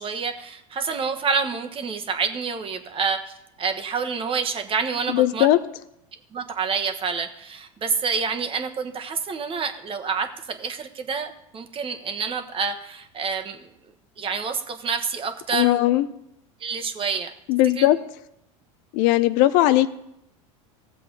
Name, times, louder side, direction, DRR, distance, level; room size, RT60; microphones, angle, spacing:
voice 1, 0.0-5.5 6.3-13.7 14.2-15.8 16.6-17.3 17.8-17.9, right 5 dB, 30° right, 6 dB, 1.4 m, -28 dB
voice 2, 5.1-5.6 15.5-16.1 17.5-18.0 18.9-19.9, left 15 dB, 60° left, 13 dB, 0.7 m, -18 dB
16.0 x 7.4 x 4.0 m, 0.80 s
hypercardioid pair, 90°, 17 cm